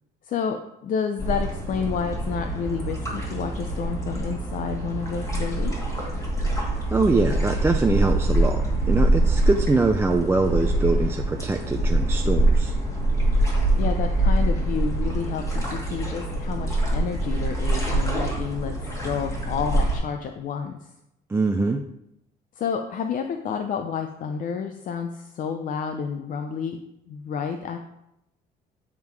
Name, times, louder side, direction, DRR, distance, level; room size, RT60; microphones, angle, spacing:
voice 1, 0.2-5.8 13.8-18.7 19.0-20.9 22.6-26.8 27.1-27.8, left 6 dB, 50° left, 6 dB, 0.6 m, -30 dB
sound 1, 1.2-20.0, right 1 dB, 20° left, 2.1 m, -24 dB
voice 2, 6.9-12.7 21.3-21.8, right 3 dB, 15° right, 4 dB, 0.4 m, -23 dB
9.4 x 3.7 x 4.6 m, 0.84 s
cardioid pair, 110°, 17 cm